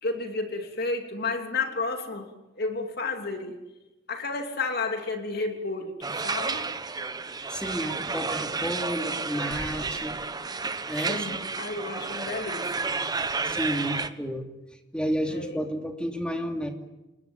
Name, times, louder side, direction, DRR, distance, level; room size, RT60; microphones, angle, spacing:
voice 1, 0.0-3.6 4.1-6.7 11.1-12.9 15.3-15.6, left 3 dB, 55° left, 4 dB, 2.9 m, -32 dB
sound 1, 6.0-14.1, right 4 dB, 20° right, 1.1 m, -31 dB
voice 2, 7.5-10.2 10.9-11.4 13.4-16.7, equal, 5° left, 4 dB, 2.8 m, -31 dB
28.0 x 21.0 x 9.3 m, 1.0 s
head